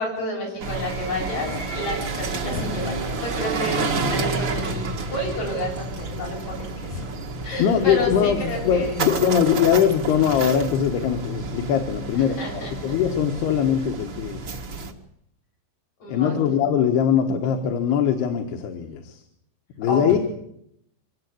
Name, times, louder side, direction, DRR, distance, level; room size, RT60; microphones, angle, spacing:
voice 1, 0.0-7.0 7.4-8.9 12.1-12.7 16.0-16.6 19.9-20.0, left 1 dB, 40° left, -1 dB, 9.0 m, -30 dB
sound 1, 0.6-14.9, right 3 dB, 75° right, 1.1 m, -30 dB
voice 2, 7.6-14.4 16.1-19.2 19.8-20.2, left 8 dB, 70° left, 5 dB, 3.2 m, -21 dB
24.5 x 17.5 x 8.5 m, 0.75 s
omnidirectional pair, 5.2 m